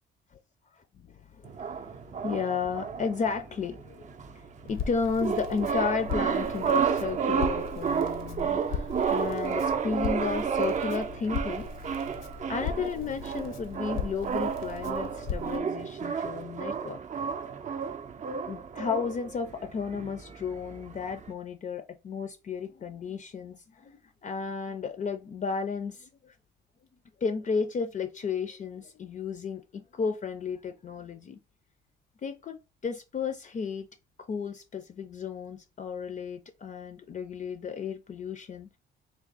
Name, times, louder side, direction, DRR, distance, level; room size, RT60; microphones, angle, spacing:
voice 1, 0.8-1.9 2.2-4.1 4.4-11.7 12.5-17.0 18.5-26.3 27.2-31.4 32.2-32.6 32.8-33.9 34.2-38.7, left 5 dB, 40° left, 0.4 m, -33 dB
sound 1, 1.4-21.3, right 6 dB, 40° right, 0.5 m, -32 dB
Crackle, 4.7-15.6, left 6 dB, 85° left, 0.7 m, -39 dB
3.5 x 2.3 x 4.0 m
cardioid pair, 90°, 20 cm